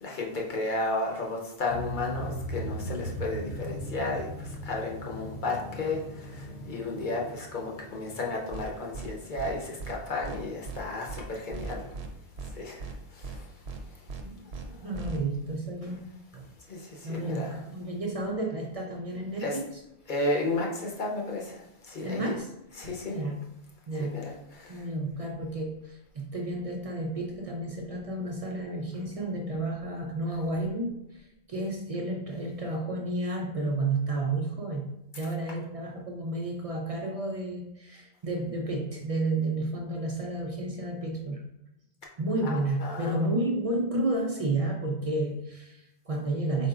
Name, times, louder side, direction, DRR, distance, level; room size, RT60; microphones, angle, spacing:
voice 1, 0.0-11.8 12.6-12.8 13.2-13.4 16.7-17.6 19.4-19.6 20.1-21.6 21.9-22.3 22.8-23.2 24.0-24.7 42.4-43.1, left 2 dB, 50° left, -1 dB, 0.9 m, -33 dB
sound 1, 1.7-10.2, equal, 85° left, 0.8 m, -39 dB
sound 2, 8.5-8.7 8.9-9.1 9.4-9.5 9.8-9.9 10.2-10.4 10.7-10.8 11.1-11.2 11.5-12.1 12.4-12.5 12.8-12.9 13.2-13.4 13.7-13.8 14.1-14.2 14.5-14.7 14.9-15.2, right 5 dB, 75° right, 0.9 m, -38 dB
voice 2, 14.2-16.5 17.0-19.7 22.0-22.5 23.1-23.5 23.9-24.4 24.7-41.4 42.2-46.7, right 2 dB, 50° right, 1 dB, 0.4 m, -31 dB
4.3 x 3.8 x 2.3 m, 0.84 s
omnidirectional pair, 1.1 m